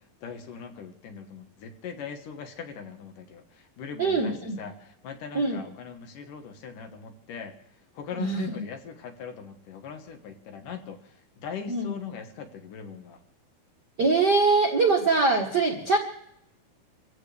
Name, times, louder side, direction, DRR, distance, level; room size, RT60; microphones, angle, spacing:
voice 1, 0.2-7.5 7.9-11.1 11.4-13.2, left 6 dB, 65° left, 6 dB, 2.7 m, -40 dB
voice 2, 4.0-4.6 5.3-5.6 8.2-8.6 11.7-11.9 14.0-16.0, right 3 dB, 85° right, 3 dB, 0.9 m, -23 dB
26.0 x 16.0 x 3.4 m, 0.75 s
omnidirectional pair, 4.5 m